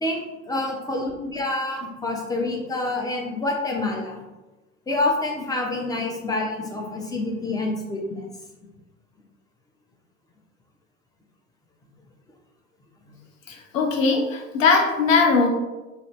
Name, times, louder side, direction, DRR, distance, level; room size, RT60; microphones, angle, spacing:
voice 1, 0.0-4.2 4.9-8.3 8.6-8.7 13.1-13.2, left 2 dB, 10° left, 0 dB, 0.6 m, -27 dB
voice 2, 13.5-15.5, left 4 dB, 80° left, 2 dB, 0.7 m, -20 dB
2.6 x 2.6 x 3.1 m, 1.1 s
hypercardioid pair, 75°, 38 cm